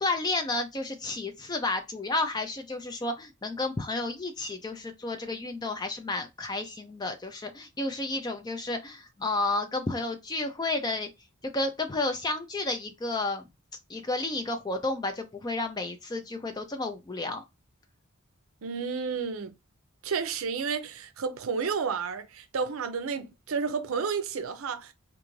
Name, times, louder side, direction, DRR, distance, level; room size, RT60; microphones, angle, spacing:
voice 1, 0.0-11.1 11.4-13.4 13.9-17.4, left 2 dB, 20° left, 0.3 m, -31 dB
voice 2, 18.6-19.5 20.0-24.9, right 5 dB, 70° right, 0.5 m, -31 dB
2.5 x 2.4 x 3.0 m
head